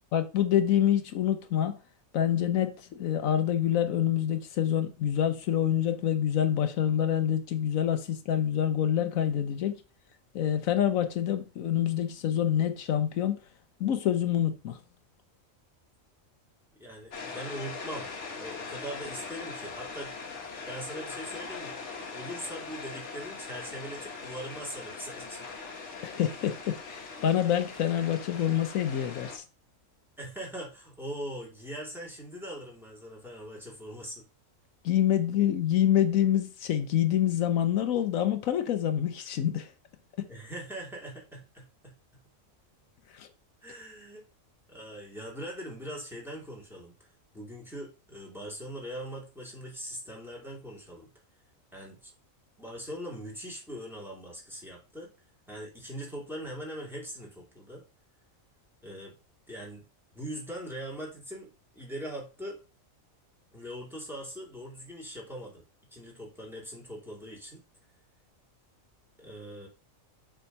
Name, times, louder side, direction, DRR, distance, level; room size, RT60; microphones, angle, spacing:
voice 1, 0.1-1.7 2.1-9.8 10.3-13.4 13.8-14.8 26.0-29.4 34.8-39.7 40.2-40.3 43.1-43.3, left 10 dB, 80° left, 1.1 m, -26 dB
voice 2, 16.8-20.1 20.7-21.7 22.1-25.5 30.2-34.2 40.3-41.9 43.6-44.2 44.7-46.9 47.3-51.1 51.7-52.1 52.6-55.1 55.5-57.8 58.8-59.1 59.5-59.8 60.1-62.6 63.5-65.6 65.9-67.6 69.2-69.7, equal, ahead, 2.4 m, -41 dB
sound 1, 17.1-29.4, left 4 dB, 60° left, 1.4 m, -41 dB
6.8 x 3.7 x 5.3 m
omnidirectional pair, 1.4 m